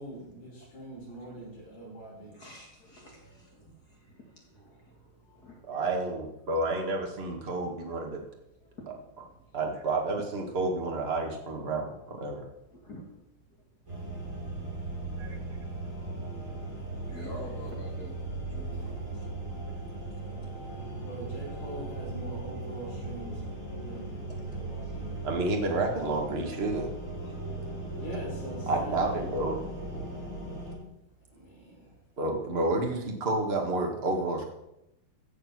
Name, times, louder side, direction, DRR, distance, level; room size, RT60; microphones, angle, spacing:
voice 1, 0.0-2.4 21.0-23.3 23.7-24.2 24.5-25.2 27.9-29.2 31.3-31.9, right 1 dB, 75° left, -12 dB, 7.3 m, -43 dB
voice 2, 0.7-1.4 1.6-1.9 2.2-5.9 6.5-6.6 8.6-9.7 12.7-13.1 13.5-13.7 14.1-15.1 16.4-19.6 20.1-20.5 21.5-21.7 23.9-25.3 27.2-28.1 31.4-31.5, left 1 dB, 40° left, 0 dB, 1.6 m, -51 dB
voice 3, 5.7-8.2 9.5-12.4 15.2-15.4 25.2-26.9 28.7-29.6 32.2-34.5, right 2 dB, 50° right, 1 dB, 0.7 m, -30 dB
sound 1, 13.9-30.7, right 2 dB, 20° right, 4.0 m, -38 dB
15.5 x 7.1 x 6.1 m, 0.86 s
omnidirectional pair, 4.4 m